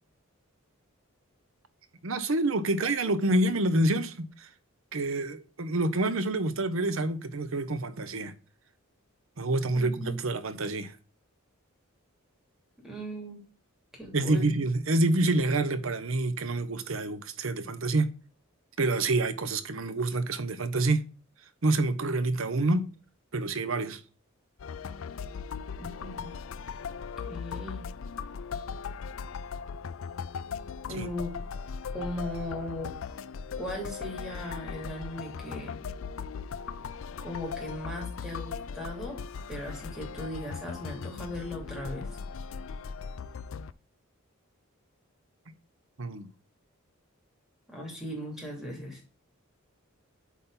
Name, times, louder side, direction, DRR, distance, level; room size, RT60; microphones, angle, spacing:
voice 1, 2.0-4.5 4.9-8.3 9.4-10.9 14.1-18.1 18.8-21.0 21.6-22.9 23.3-24.0 31.0-31.1 46.0-46.3, right 2 dB, 70° right, 0.9 m, -27 dB
voice 2, 9.7-10.1 12.8-13.4 14.0-14.5 25.8-26.3 27.2-27.9 30.9-31.4 31.9-32.9 33.6-35.8 37.2-39.2 39.5-42.1 47.7-49.0, left 1 dB, ahead, 2.9 m, -38 dB
sound 1, 24.6-43.7, left 6 dB, 70° left, 0.4 m, -38 dB
8.3 x 4.2 x 3.7 m
head